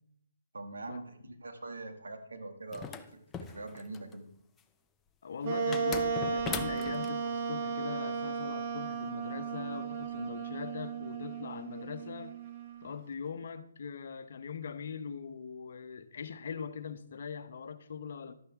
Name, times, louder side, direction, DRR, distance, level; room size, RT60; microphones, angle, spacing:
voice 1, 0.5-4.3, right 2 dB, 85° right, 2.1 m, -43 dB
sound 1, 2.7-4.1 5.7-7.1, left 6 dB, 10° left, 0.6 m, -40 dB
voice 2, 5.2-12.3 12.8-18.3, left 6 dB, 60° left, 1.0 m, -41 dB
Wind instrument woodwind instrument, 5.4-12.9, right 5 dB, 35° right, 1.1 m, -35 dB
12.5 x 9.4 x 3.6 m
hypercardioid pair, 155°, 0 cm